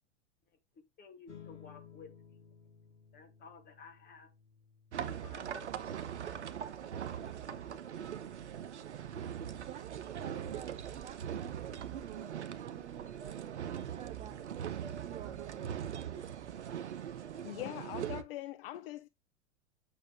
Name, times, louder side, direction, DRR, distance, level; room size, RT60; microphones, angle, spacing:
voice 1, 0.7-2.4 3.1-4.3 5.0-6.1, left 5 dB, 30° left, 2.4 m, -55 dB
sound 1, 1.3-12.0, left 8 dB, 90° left, 2.2 m, -60 dB
sound 2, 4.9-18.2, right 9 dB, 75° right, 0.9 m, -41 dB
voice 2, 9.5-14.7 15.0-16.6, right 11 dB, 20° right, 0.3 m, -51 dB
voice 3, 17.4-19.1, left 16 dB, 55° left, 0.6 m, -42 dB
8.8 x 6.3 x 3.5 m
figure-of-eight pair, 90°, 35 cm